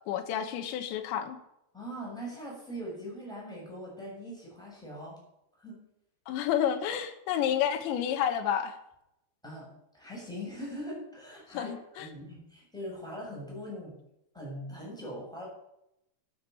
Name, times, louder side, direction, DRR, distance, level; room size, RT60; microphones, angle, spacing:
voice 1, 0.1-1.4 6.3-8.7 11.6-12.1, left 9 dB, 85° left, 7 dB, 3.5 m, -30 dB
voice 2, 1.7-5.2 5.6-5.8 9.4-9.7 9.9-14.0 14.3-15.5, equal, ahead, -3 dB, 6.9 m, -41 dB
13.0 x 9.5 x 7.0 m, 0.81 s
omnidirectional pair, 5.0 m